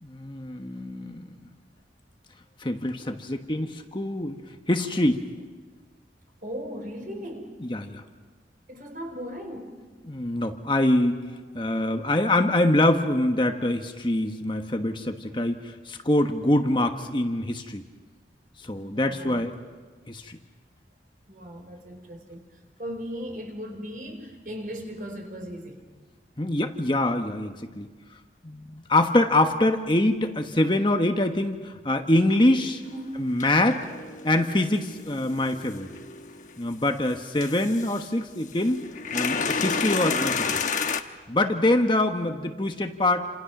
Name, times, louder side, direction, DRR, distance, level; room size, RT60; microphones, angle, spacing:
voice 1, 0.0-1.3 2.6-4.4 4.7-5.3 7.6-8.0 10.1-11.2 11.5-17.8 18.6-19.5 20.1-20.4 26.4-27.9 28.4-32.8 33.2-33.9 34.2-35.9 36.6-38.8 39.1-40.6 41.3-43.3, left 1 dB, 25° left, 1.3 m, -24 dB
voice 2, 6.4-7.6 8.7-9.8 18.8-19.5 21.3-22.4 22.8-25.8 32.9-33.3, equal, 50° right, 4.6 m, -37 dB
sound 1, 32.8-32.9 33.4-36.7 37.4-38.1 38.5-41.0, left 5 dB, 45° left, 1.1 m, -30 dB
29.5 x 27.5 x 6.1 m
head